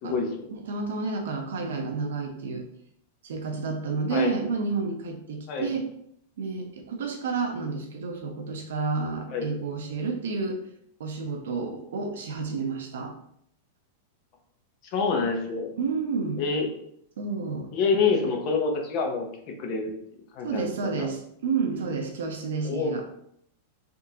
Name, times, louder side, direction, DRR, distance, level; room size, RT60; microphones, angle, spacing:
voice 1, 0.5-2.7 3.2-5.9 6.4-10.6 11.0-13.1 15.8-16.4 17.2-17.7 20.4-23.0, right 4 dB, 85° right, 3 dB, 0.8 m, -30 dB
voice 2, 14.9-15.7 16.4-16.7 17.7-19.9 20.3-21.1 22.6-23.0, left 4 dB, 35° left, 3 dB, 0.7 m, -27 dB
3.7 x 3.5 x 2.8 m, 0.71 s
supercardioid pair, 165°, 0 cm